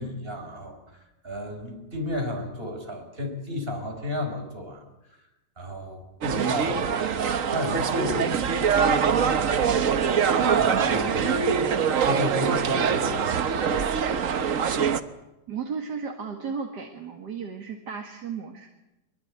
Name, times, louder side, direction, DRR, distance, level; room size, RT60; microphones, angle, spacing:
voice 1, 0.0-4.9 5.6-10.1 10.5-14.0, left 1 dB, 30° right, 4 dB, 5.2 m, -33 dB
sound 1, 6.2-15.0, right 6 dB, 50° right, 1.3 m, -23 dB
voice 2, 15.5-18.7, right 6 dB, 70° right, 3 dB, 2.5 m, -34 dB
23.5 x 22.5 x 8.5 m, 0.97 s
omnidirectional pair, 1.9 m